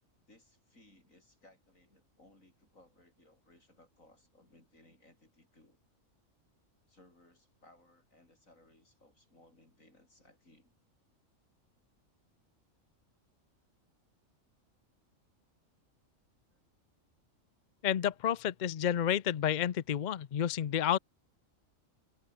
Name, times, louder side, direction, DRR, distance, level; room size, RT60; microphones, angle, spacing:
voice 1, 0.3-5.8 6.9-10.7 16.5-16.6, left 1 dB, 80° left, 8.2 m, -63 dB
voice 2, 17.8-21.0, left 10 dB, 50° left, 0.6 m, -30 dB
omnidirectional pair, 1.4 m